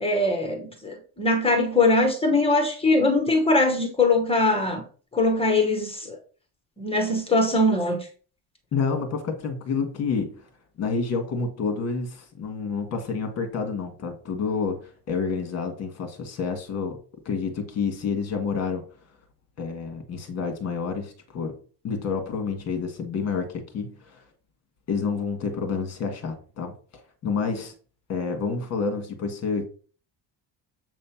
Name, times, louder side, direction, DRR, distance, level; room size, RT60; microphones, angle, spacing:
voice 1, 0.0-4.8 5.1-6.2 6.8-8.0, left 2 dB, 15° left, 0.9 m, -22 dB
voice 2, 8.7-10.5 10.8-17.0 17.2-18.8 19.6-21.6 21.8-24.2 24.9-26.7 27.2-27.7 28.1-29.6, left 5 dB, 40° left, 1.5 m, -29 dB
7.6 x 3.2 x 5.7 m
cardioid pair, 175°, 42 cm